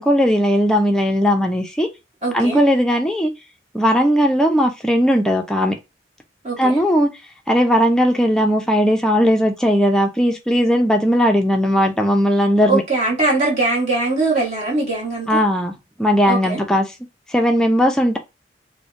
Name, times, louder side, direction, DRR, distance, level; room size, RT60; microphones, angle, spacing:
voice 1, 0.0-1.9 2.3-3.3 3.7-5.8 6.6-7.1 7.5-12.8 15.3-15.7 16.0-16.9 17.3-18.2, equal, 5° left, 0.4 m, -17 dB
voice 2, 2.2-2.6 6.4-6.8 12.7-15.4 16.3-16.6, right 3 dB, 40° right, 1.1 m, -21 dB
3.1 x 2.1 x 2.5 m
head